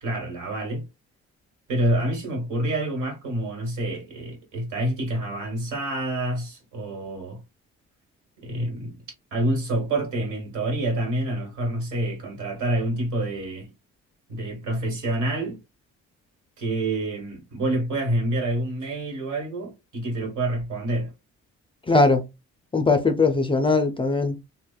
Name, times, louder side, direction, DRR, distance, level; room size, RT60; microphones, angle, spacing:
voice 1, 0.0-0.8 1.7-7.4 8.4-9.0 9.3-13.7 14.3-15.6 16.6-21.1, right 1 dB, 75° right, 1.5 m, -27 dB
voice 2, 21.9-22.3 22.7-24.3, left 3 dB, 20° left, 0.4 m, -20 dB
3.3 x 2.0 x 2.2 m
cardioid pair, 90°, 30 cm